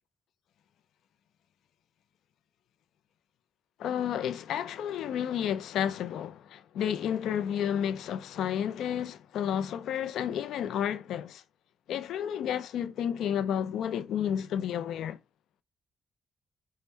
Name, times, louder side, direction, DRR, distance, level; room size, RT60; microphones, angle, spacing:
voice 1, 3.8-11.4 11.9-15.2, left 9 dB, 85° left, 0.3 m, -31 dB
5.5 x 2.1 x 4.2 m
cardioid pair, 80°, 0 cm